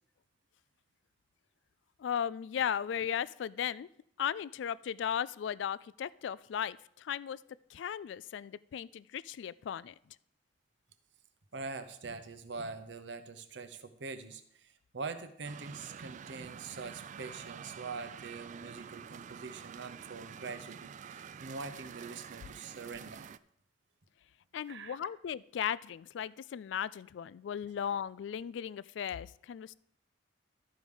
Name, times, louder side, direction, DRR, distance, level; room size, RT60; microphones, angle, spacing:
voice 1, 2.0-3.9 4.2-7.4 7.7-9.9 24.5-29.7, left 8 dB, 70° left, 20 dB, 0.3 m, -36 dB
voice 2, 11.5-23.3 24.7-25.0, right 4 dB, 65° right, 10 dB, 0.8 m, -44 dB
sound 1, 15.4-23.4, right 7 dB, 40° right, 0.3 m, -48 dB
13.0 x 4.9 x 5.3 m, 0.72 s
head